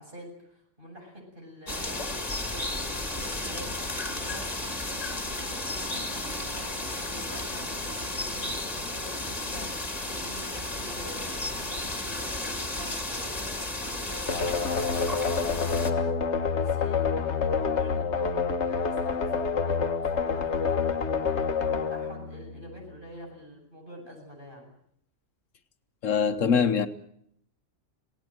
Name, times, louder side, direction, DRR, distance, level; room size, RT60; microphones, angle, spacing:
voice 1, 0.0-9.9 10.2-16.1 16.6-24.7, equal, 40° right, 7.9 m, -47 dB
sound 1, 1.7-15.9, left 2 dB, 30° left, 2.6 m, -33 dB
sound 2, 14.3-23.0, left 5 dB, 65° left, 1.5 m, -27 dB
voice 2, 26.0-26.9, left 6 dB, 80° left, 1.5 m, -23 dB
26.5 x 18.0 x 7.8 m
omnidirectional pair, 1.3 m